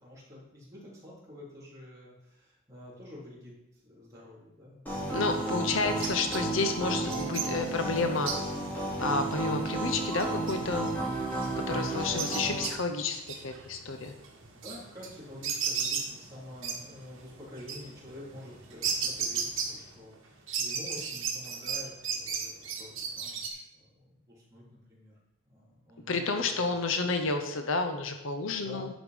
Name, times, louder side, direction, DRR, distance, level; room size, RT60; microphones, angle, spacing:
voice 1, 0.0-4.8 11.6-12.0 14.5-23.6 24.0-25.1 25.5-26.7 28.6-28.9, left 1 dB, 15° right, -8 dB, 3.7 m, -48 dB
sound 1, 4.9-12.7, right 2 dB, 10° left, 2.9 m, -33 dB
voice 2, 5.1-8.3 9.0-10.9 11.7-14.1 26.1-28.9, left 3 dB, 75° left, 6 dB, 0.8 m, -30 dB
sound 2, 5.7-20.2 20.5-23.5, right 6 dB, 75° right, 1.8 m, -36 dB
11.0 x 5.2 x 5.4 m, 0.88 s
head